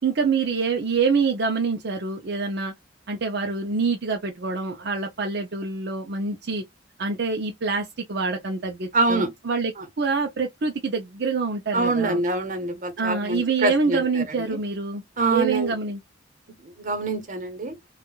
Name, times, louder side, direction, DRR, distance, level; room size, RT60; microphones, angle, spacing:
voice 1, 0.0-2.7 3.1-6.6 7.0-9.7 10.0-12.2 13.0-15.0 15.3-16.0, right 4 dB, 65° right, 0.6 m, -26 dB
voice 2, 8.9-9.3 11.7-14.6 15.2-15.7 16.6-17.7, right 3 dB, 45° right, 1.0 m, -25 dB
4.5 x 2.4 x 2.3 m
head